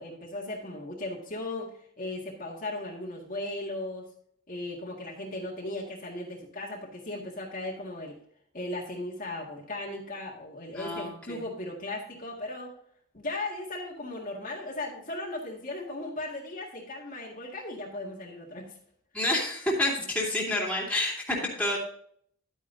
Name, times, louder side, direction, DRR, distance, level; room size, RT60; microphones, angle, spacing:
voice 1, 0.0-1.7 2.0-4.1 4.5-8.2 8.5-12.7 13.1-18.7, left 2 dB, 40° left, -2 dB, 1.8 m, -37 dB
voice 2, 10.7-11.4 19.1-21.8, left 1 dB, 5° left, -3 dB, 2.6 m, -29 dB
11.5 x 9.0 x 2.7 m, 0.63 s
head